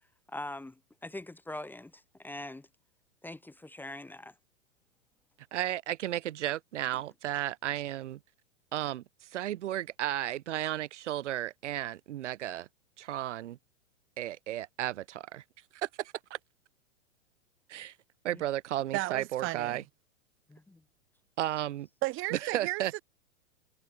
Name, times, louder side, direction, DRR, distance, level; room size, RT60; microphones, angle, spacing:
voice 1, 0.3-2.7 3.2-4.3 18.3-18.4 20.5-20.8, left 2 dB, 5° left, 1.3 m, -43 dB
voice 2, 5.5-8.2 8.7-12.7 13.0-13.6 14.2-15.4 15.7-16.4 17.7-17.9 18.2-19.8 21.4-21.9 22.3-23.0, right 13 dB, 65° right, 1.3 m, -34 dB
voice 3, 18.9-19.8 22.0-22.8, right 20 dB, 30° right, 1.2 m, -33 dB
hypercardioid pair, 110°, 39 cm